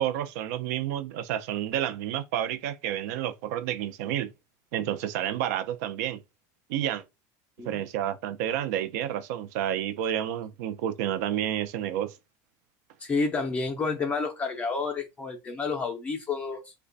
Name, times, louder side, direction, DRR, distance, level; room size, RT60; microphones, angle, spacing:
voice 1, 0.0-4.3 4.7-6.2 6.7-7.0 7.6-12.2, right 11 dB, 70° right, 0.4 m, -30 dB
voice 2, 13.0-16.7, left 4 dB, 15° left, 0.4 m, -30 dB
3.3 x 2.1 x 3.8 m
cardioid pair, 180°, 9 cm